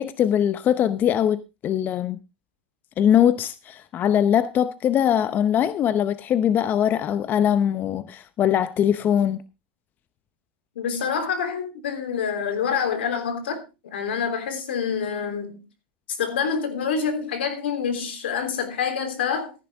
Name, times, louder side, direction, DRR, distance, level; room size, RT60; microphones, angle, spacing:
voice 1, 0.0-2.2 3.0-9.4, left 9 dB, 35° left, 0.7 m, -21 dB
voice 2, 10.8-15.6 16.1-19.5, left 6 dB, 80° left, 3.4 m, -27 dB
14.5 x 10.5 x 3.5 m
hypercardioid pair, 115°, 6 cm